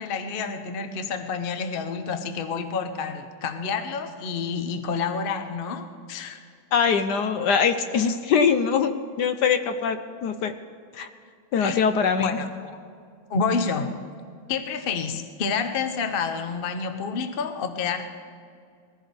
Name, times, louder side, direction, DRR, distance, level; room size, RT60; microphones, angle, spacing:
voice 1, 0.0-6.4 11.6-11.8 12.2-12.8 13.3-13.9 14.5-18.1, left 5 dB, 50° left, 7 dB, 0.6 m, -29 dB
voice 2, 6.7-10.5 10.9-11.1 11.5-12.4, left 6 dB, 65° left, 9 dB, 1.1 m, -23 dB
21.0 x 15.0 x 3.4 m, 2.3 s
omnidirectional pair, 2.1 m